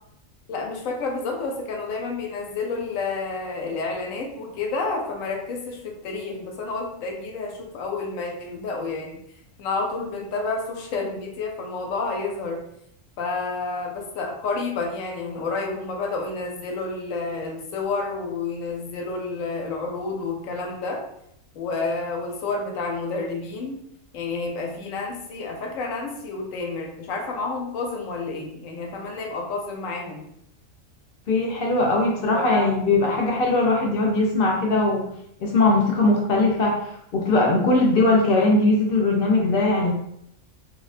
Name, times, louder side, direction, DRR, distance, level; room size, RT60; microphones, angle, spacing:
voice 1, 0.5-9.2 9.6-12.6 13.2-21.0 21.5-23.8 24.1-30.3 32.3-32.7, left 3 dB, 90° left, 1 dB, 1.0 m, -30 dB
voice 2, 31.3-35.0 35.4-36.8 37.1-39.9, left 2 dB, 60° left, -1 dB, 0.6 m, -20 dB
2.6 x 2.1 x 2.4 m, 0.74 s
omnidirectional pair, 1.4 m